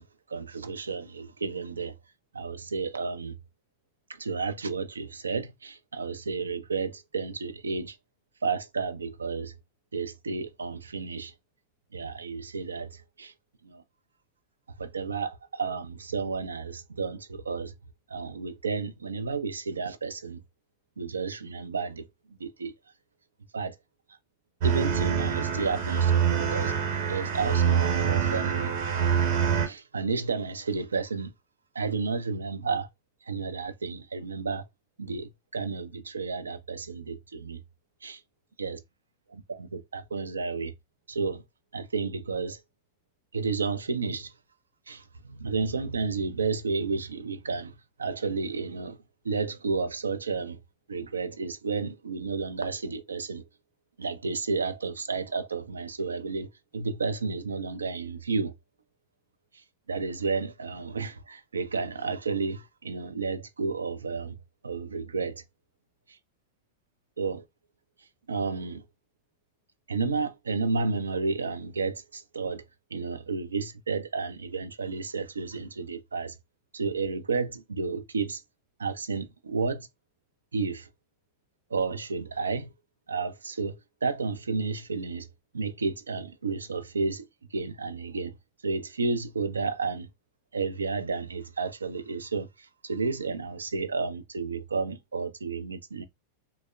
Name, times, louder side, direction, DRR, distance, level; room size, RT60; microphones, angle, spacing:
voice 1, 0.0-1.9 2.3-3.4 4.1-8.0 8.4-9.6 9.9-11.3 11.9-13.3 13.6-13.8 14.8-17.7 18.1-20.4 21.0-22.7 23.5-23.8 24.6-26.8 27.1-28.8 29.7-31.3 31.7-32.9 33.2-34.7 35.0-37.6 38.0-38.2 38.6-38.8 39.3-40.7 41.1-41.4 41.7-42.6 43.3-44.3 44.9-47.7 48.0-49.0 49.2-50.6 50.9-53.4 54.0-58.5 59.5-64.4 64.6-65.4 66.1-66.2 67.2-67.4 68.3-68.9 69.9-72.6 72.9-76.4 76.7-78.4 78.8-79.9 80.5-80.9 81.7-82.7 83.1-85.3 85.5-88.3 88.6-90.1 90.5-96.0, right 4 dB, 75° right, 0.4 m, -32 dB
sound 1, 24.6-29.7, right 7 dB, 50° right, 0.8 m, -25 dB
3.3 x 2.0 x 2.3 m
figure-of-eight pair, 90°, 0 cm